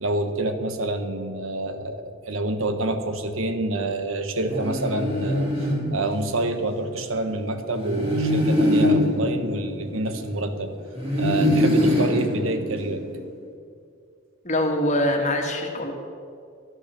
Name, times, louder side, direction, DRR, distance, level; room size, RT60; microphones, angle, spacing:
voice 1, 0.0-10.8 11.2-13.0, right 2 dB, 85° right, 8 dB, 1.1 m, -27 dB
sound 1, 4.5-6.6 7.7-10.4 11.0-13.2, left 1 dB, 30° right, 3.5 m, -23 dB
voice 2, 14.4-15.9, left 1 dB, 35° left, 2 dB, 1.7 m, -23 dB
13.0 x 9.7 x 6.8 m, 2.3 s
head